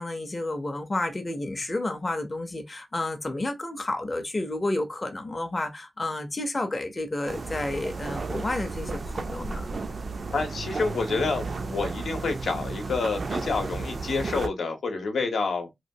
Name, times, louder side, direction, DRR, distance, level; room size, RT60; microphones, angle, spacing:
voice 1, 0.0-9.7, left 2 dB, 25° left, 0.4 m, -31 dB
sound 1, 7.3-14.5, right 3 dB, 45° right, 0.3 m, -33 dB
voice 2, 10.3-15.7, left 4 dB, 80° left, 0.7 m, -28 dB
2.9 x 2.3 x 2.6 m
wide cardioid pair, 170°, 0 cm